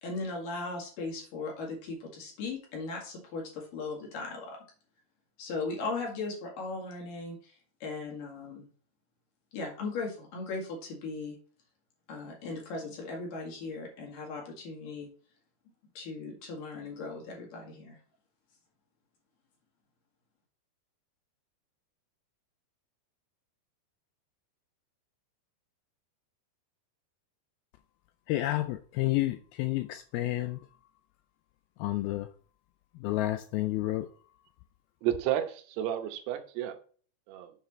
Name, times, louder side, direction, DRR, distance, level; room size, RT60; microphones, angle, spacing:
voice 1, 0.0-4.6 5.4-7.5 7.8-8.6 9.5-11.3 12.1-15.1 15.9-18.0, left 3 dB, 60° left, 3.3 m, -38 dB
voice 2, 28.3-30.6 31.8-32.3 33.0-34.1, left 16 dB, 85° left, 2.2 m, -30 dB
voice 3, 35.0-36.8 37.3-37.5, right 12 dB, 85° right, 3.0 m, -31 dB
7.4 x 5.8 x 4.2 m
omnidirectional pair, 4.7 m